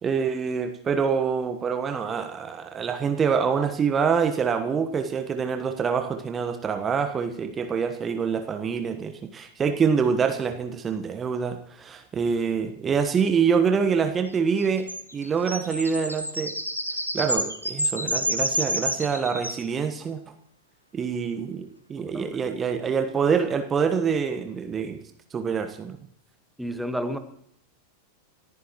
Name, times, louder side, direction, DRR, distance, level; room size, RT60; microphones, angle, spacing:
voice 1, 0.0-16.5 17.1-20.2 20.9-25.0 25.3-26.0, right 6 dB, 20° right, 1.3 m, -26 dB
sound 1, 14.6-19.7, equal, 90° left, 1.7 m, -29 dB
voice 2, 22.0-22.4 26.6-27.2, equal, ahead, 1.5 m, -31 dB
28.5 x 14.5 x 3.1 m
figure-of-eight pair, 90°, 0 cm